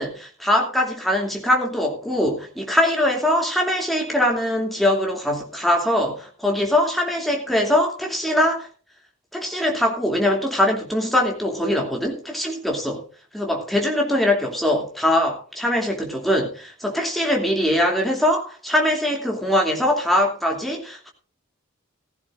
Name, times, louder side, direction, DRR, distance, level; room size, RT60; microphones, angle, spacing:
voice 1, 0.0-8.7 9.3-13.0 13.3-21.1, left 1 dB, ahead, 0 dB, 2.7 m, -22 dB
16.0 x 15.0 x 2.6 m, 0.39 s
head